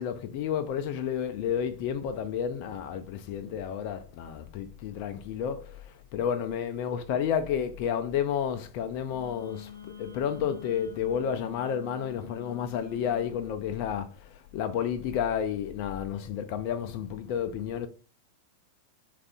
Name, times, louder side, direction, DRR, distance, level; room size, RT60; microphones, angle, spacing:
voice 1, 0.0-17.9, left 8 dB, 45° left, 0.4 m, -31 dB
Wind instrument woodwind instrument, 9.0-13.4, left 8 dB, 90° right, 0.6 m, -46 dB
3.2 x 2.5 x 3.5 m
figure-of-eight pair, 90°, 0 cm